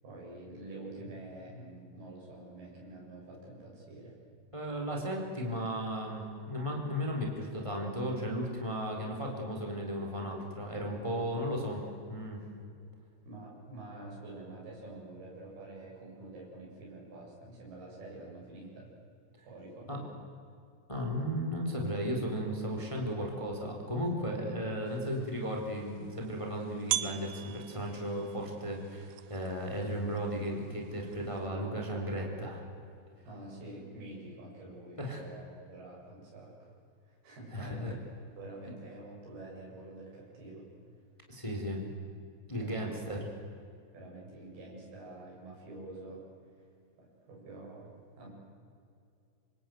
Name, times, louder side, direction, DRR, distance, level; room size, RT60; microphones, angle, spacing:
voice 1, 0.0-4.2 13.3-18.9 19.5-20.2 33.3-36.7 37.1-38.0 38.4-40.7 42.6-43.2 43.9-46.2 47.0-47.9 48.2-48.3, right 2 dB, 65° right, -3 dB, 9.2 m, -47 dB
voice 2, 4.5-12.4 19.9-20.0 20.9-32.6 35.0-35.2 37.5-37.9 41.3-41.9 42.5-43.2, equal, 5° left, 1 dB, 3.6 m, -35 dB
sound 1, 24.9-31.5, right 15 dB, 90° right, 3.1 m, -42 dB
26.0 x 26.0 x 7.9 m, 2.4 s
omnidirectional pair, 4.9 m